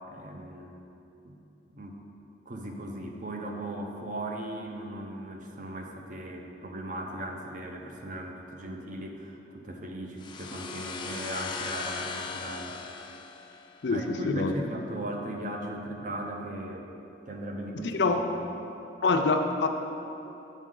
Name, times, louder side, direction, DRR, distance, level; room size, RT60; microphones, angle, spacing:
voice 1, 0.1-0.9 1.2-1.4 1.7-2.0 2.5-12.8 13.9-16.9 17.3-17.9, right 1 dB, 50° right, 2 dB, 0.7 m, -37 dB
sound 1, 10.2-13.9, left 5 dB, 25° left, 0.4 m, -38 dB
voice 2, 13.8-14.5 17.8-18.3 19.0-19.7, left 3 dB, 80° left, 5 dB, 0.5 m, -25 dB
8.1 x 5.1 x 3.8 m, 2.9 s
head